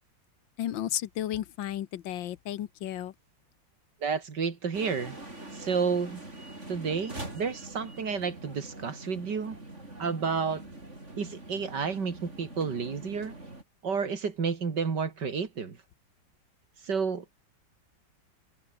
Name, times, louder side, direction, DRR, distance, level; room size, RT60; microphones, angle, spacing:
voice 1, 0.6-3.1, left 12 dB, 85° left, 1.7 m, -33 dB
voice 2, 4.0-5.2 5.6-6.2 6.7-9.6 10.0-10.6 11.2-13.3 13.8-15.8 16.9-17.4, right 5 dB, 65° right, 3.1 m, -31 dB
sound 1, 4.7-13.6, right 2 dB, 35° right, 6.3 m, -44 dB
open air
omnidirectional pair, 2.0 m